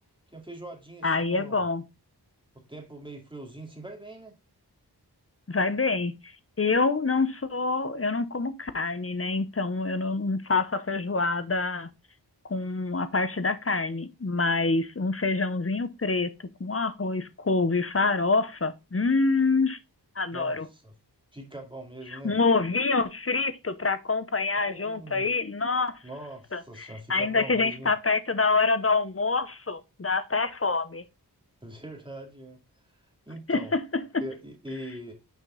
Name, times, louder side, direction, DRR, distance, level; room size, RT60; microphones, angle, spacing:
voice 1, 0.3-1.6 2.5-4.4 20.3-20.9 21.3-22.4 24.6-25.3 26.0-27.9 31.6-32.6 33.3-33.7 34.2-35.1, right 1 dB, 10° right, 2.3 m, -42 dB
voice 2, 1.0-1.8 5.5-6.3 6.6-11.9 12.5-16.3 16.6-19.8 20.2-20.7 22.1-26.0 26.5-31.0 33.5-33.8, left 3 dB, 35° left, 0.9 m, -26 dB
6.5 x 5.2 x 3.8 m
wide cardioid pair, 50°, 41 cm